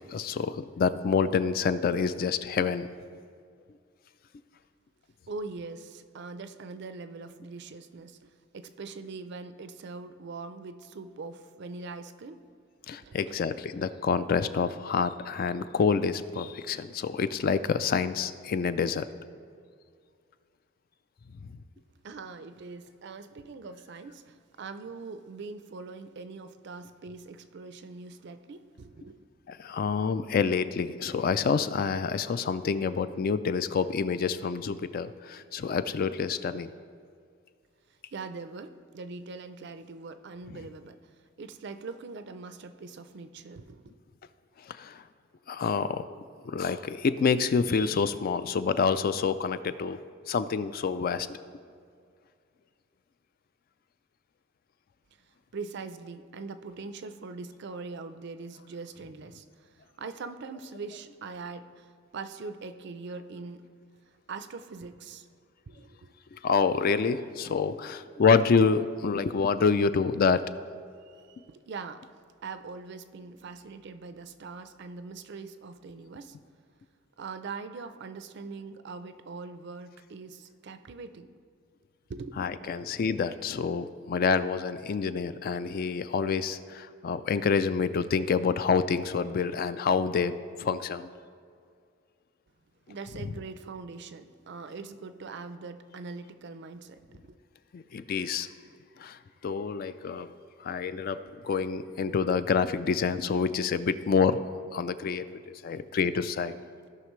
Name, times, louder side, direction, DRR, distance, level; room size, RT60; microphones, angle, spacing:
voice 1, 0.1-2.9 12.9-19.1 29.5-36.7 44.7-45.0 45.5-46.0 46.4-50.0 50.3-51.4 66.3-70.4 82.4-91.1 97.7-98.5 99.0-100.3 100.6-104.4 104.7-106.5, left 5 dB, 45° left, 13 dB, 0.3 m, -27 dB
voice 2, 5.3-12.4 13.0-13.4 22.0-29.3 37.9-43.9 55.2-63.6 64.1-65.3 65.7-66.1 71.1-72.1 72.4-76.4 77.2-81.4 82.1-82.8 92.9-97.4 105.3-105.4 105.8-105.9, right 4 dB, 55° right, 10 dB, 0.4 m, -42 dB
16.5 x 5.7 x 3.1 m, 2.2 s
head